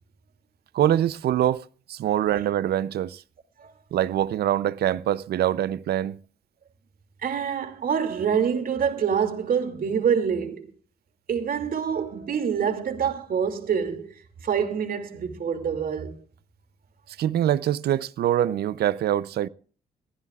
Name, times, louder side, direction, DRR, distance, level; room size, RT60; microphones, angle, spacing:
voice 1, 0.7-3.2 3.9-6.2 17.2-19.5, right 11 dB, 90° right, 0.6 m, -24 dB
voice 2, 7.2-10.7 11.3-14.1 14.4-16.2, right 7 dB, 65° right, 2.5 m, -26 dB
22.0 x 15.0 x 2.4 m
cardioid pair, 110°, 16 cm